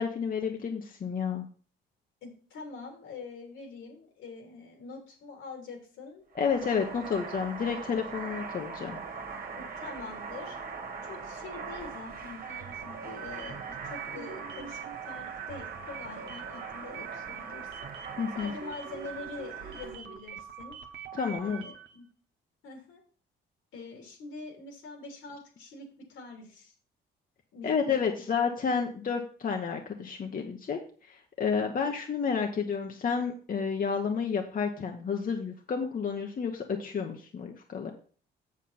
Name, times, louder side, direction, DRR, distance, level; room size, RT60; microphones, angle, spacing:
voice 1, 0.0-1.5 6.3-9.0 18.2-18.5 21.1-21.6 27.6-30.8 31.1-37.9, left 6 dB, 45° left, 3 dB, 1.1 m, -30 dB
voice 2, 2.2-6.2 7.1-7.2 9.5-10.6 11.1-17.9 18.3-20.8 21.5-22.0 22.6-23.0 23.7-26.7 27.5-28.2, left 3 dB, 85° left, 1 dB, 3.4 m, -45 dB
sound 1, 6.3-20.0, right 5 dB, 45° right, 1.6 m, -42 dB
sound 2, 12.4-22.0, right 9 dB, 65° right, 1.2 m, -43 dB
7.5 x 7.2 x 4.3 m, 0.42 s
cardioid pair, 90°, 20 cm